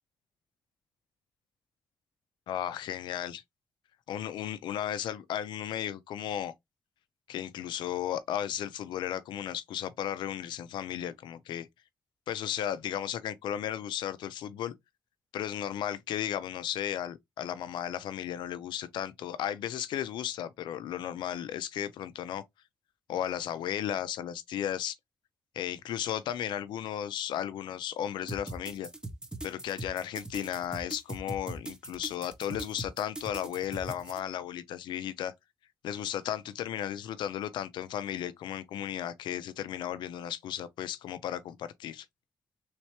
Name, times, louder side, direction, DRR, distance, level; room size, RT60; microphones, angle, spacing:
voice 1, 2.5-3.4 4.1-6.5 7.3-11.7 12.3-14.7 15.3-22.4 23.1-25.0 25.5-28.9 29.4-35.3 35.8-42.1, left 10 dB, 85° left, 0.4 m, -35 dB
sound 1, 28.3-34.2, right 2 dB, 10° right, 0.8 m, -40 dB
3.2 x 3.2 x 2.9 m
cardioid pair, 60°, 8 cm